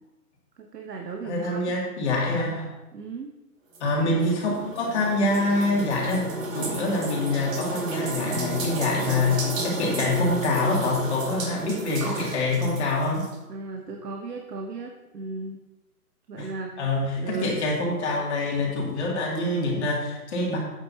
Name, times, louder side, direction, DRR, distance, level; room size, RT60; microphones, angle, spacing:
voice 1, 0.6-1.6 2.9-3.3 13.5-15.6 16.3-16.9 17.2-17.6, right 4 dB, 90° right, 2 dB, 1.3 m, -35 dB
voice 2, 1.2-2.7 3.8-13.3 16.4-16.5 16.8-20.6, left 2 dB, 45° left, -3 dB, 2.6 m, -25 dB
sound 1, 3.7-13.4, right 2 dB, 55° right, 2.3 m, -32 dB
11.0 x 8.8 x 2.9 m, 1.0 s
hypercardioid pair, 165°, 47 cm